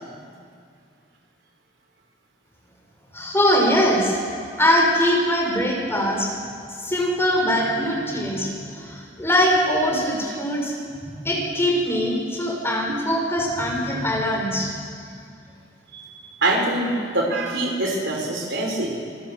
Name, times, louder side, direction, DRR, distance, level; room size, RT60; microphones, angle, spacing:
voice 1, 3.1-4.2 4.6-6.3 6.8-14.8, equal, 15° left, -2 dB, 5.8 m, -22 dB
voice 2, 15.9-18.9, right 2 dB, 70° right, 1 dB, 5.1 m, -24 dB
28.0 x 21.0 x 7.3 m, 2.3 s
head